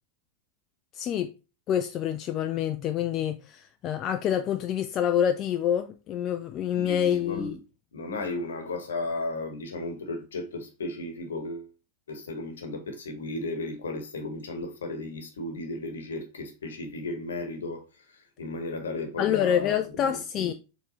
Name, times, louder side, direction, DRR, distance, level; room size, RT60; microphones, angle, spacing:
voice 1, 0.9-1.3 1.7-7.6 19.2-20.5, left 9 dB, 35° left, 0.3 m, -27 dB
voice 2, 6.7-7.6 7.9-11.7 12.1-19.7 20.0-20.5, left 2 dB, 65° left, 1.0 m, -35 dB
4.6 x 3.6 x 3.0 m
figure-of-eight pair, 90°, 0 cm